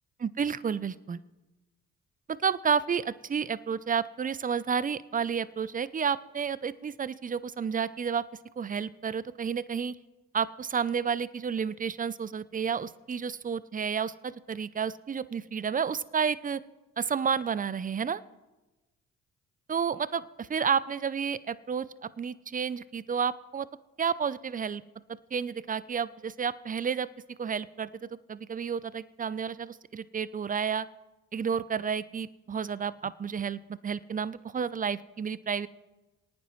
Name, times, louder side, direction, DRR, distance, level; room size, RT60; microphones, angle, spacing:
voice 1, 0.2-1.2 2.4-8.2 8.6-10.0 10.3-16.6 17.0-18.2 19.7-21.9 22.2-23.7 24.0-24.8 25.3-27.1 27.4-30.9 31.3-35.7, right 6 dB, 25° right, 18 dB, 0.5 m, -31 dB
27.5 x 9.3 x 3.1 m, 1.1 s
hypercardioid pair, 50°, 36 cm